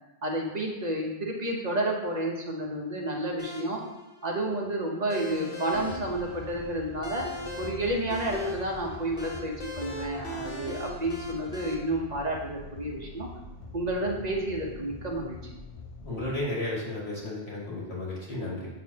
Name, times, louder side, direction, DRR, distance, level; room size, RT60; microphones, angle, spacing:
voice 1, 0.2-3.8 4.2-7.3 7.6-13.3 13.7-15.4, right 1 dB, 40° right, -1 dB, 1.0 m, -30 dB
sound 1, 3.4-11.7, left 2 dB, 60° left, 1.1 m, -39 dB
sound 2, 5.7-16.4, left 2 dB, 40° left, 0.6 m, -44 dB
voice 2, 16.0-18.7, left 1 dB, 85° left, -5 dB, 2.3 m, -33 dB
7.3 x 6.3 x 2.8 m, 1.0 s
omnidirectional pair, 1.1 m